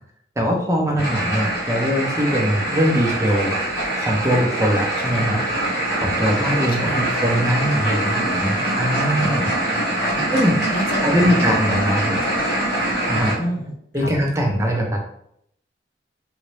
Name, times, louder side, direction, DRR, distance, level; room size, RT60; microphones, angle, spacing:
voice 1, 0.4-3.5 3.9-5.4 6.0-9.5 10.3-10.6 11.0-12.2 13.1-13.3 13.9-15.0, equal, 15° right, 0 dB, 0.5 m, -21 dB
sound 1, 1.0-13.3, right 1 dB, 70° left, 1.1 m, -23 dB
voice 2, 5.0-5.7 6.7-7.3 9.1-9.5 10.1-10.3 10.7-12.4 13.4-14.1, equal, 55° left, 1 dB, 0.6 m, -31 dB
3.8 x 2.1 x 3.1 m, 0.72 s
head